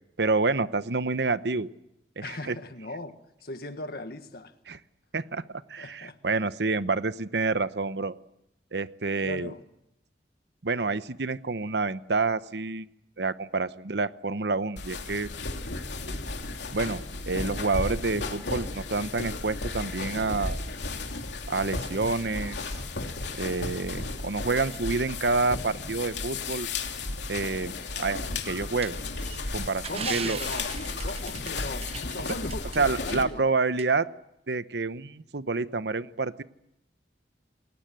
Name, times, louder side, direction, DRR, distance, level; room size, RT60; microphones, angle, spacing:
voice 1, 0.2-1.7 2.2-2.6 4.7-4.8 5.1-5.4 5.7-8.1 8.7-9.5 10.6-12.9 13.2-15.3 16.7-17.0 17.3-20.6 21.5-22.7 23.4-26.7 27.3-29.0 29.5-30.4 32.7-34.1 34.5-36.4, right 3 dB, 75° right, 14 dB, 0.9 m, -28 dB
voice 2, 2.2-4.5 5.8-6.3 9.2-9.6 29.9-30.7 31.0-33.5, left 2 dB, 60° left, 8 dB, 1.7 m, -38 dB
sound 1, 14.8-33.2, left 3 dB, 85° left, 2.9 m, -34 dB
sound 2, 28.8-32.8 33.1-33.2 33.8-33.9, right 7 dB, 35° right, 0.8 m, -38 dB
28.5 x 20.0 x 7.8 m, 0.84 s
head